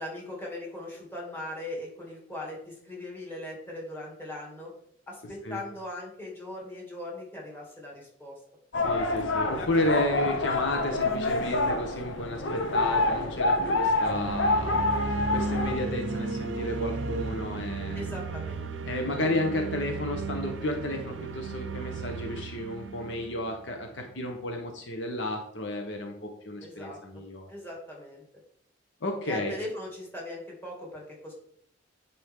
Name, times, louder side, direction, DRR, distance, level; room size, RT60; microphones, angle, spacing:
voice 1, 0.0-4.7 5.1-8.3 17.9-18.7 26.6-27.2 27.5-28.2 29.2-31.3, left 1 dB, 10° left, -3 dB, 2.4 m, -39 dB
sound 1, 8.7-15.8, left 2 dB, 85° left, 1.0 m, -27 dB
voice 2, 8.8-18.0 18.9-27.5 29.0-29.5, left 1 dB, 70° left, 3 dB, 1.0 m, -32 dB
sound 2, 14.0-24.1, right 3 dB, 75° right, 0.6 m, -34 dB
9.7 x 4.4 x 3.7 m, 0.68 s
head